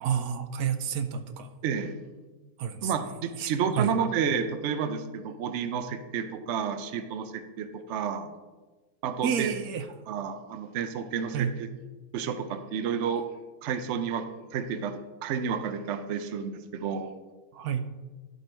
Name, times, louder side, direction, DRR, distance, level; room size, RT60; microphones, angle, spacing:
voice 1, 0.0-1.5 2.6-2.9 3.3-3.9 9.2-9.9 11.3-11.5 17.5-17.9, right 8 dB, 80° right, 9 dB, 1.1 m, -30 dB
voice 2, 1.6-1.9 2.8-8.3 9.0-9.5 10.1-11.7 12.1-13.3 13.6-14.3 14.5-14.9 15.2-17.1, right 7 dB, 60° right, 9 dB, 0.8 m, -30 dB
11.5 x 4.6 x 4.4 m, 1.3 s
omnidirectional pair, 1.6 m